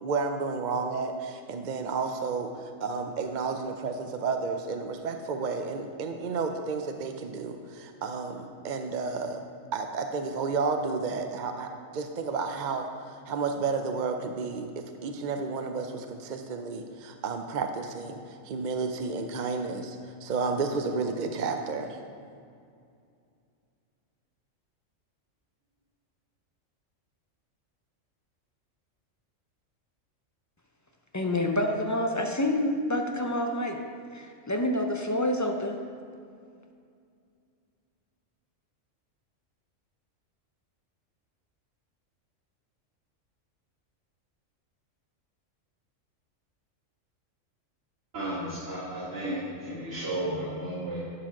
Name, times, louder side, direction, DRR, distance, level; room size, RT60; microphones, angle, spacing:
voice 1, 0.0-9.4 9.7-22.0, right 4 dB, 55° right, 5 dB, 0.5 m, -32 dB
voice 2, 31.1-33.8 34.1-35.8, left 1 dB, 25° left, 2 dB, 0.4 m, -27 dB
voice 3, 48.1-51.0, right 1 dB, 85° right, -12 dB, 2.8 m, -33 dB
11.5 x 4.9 x 5.8 m, 2.4 s
omnidirectional pair, 1.3 m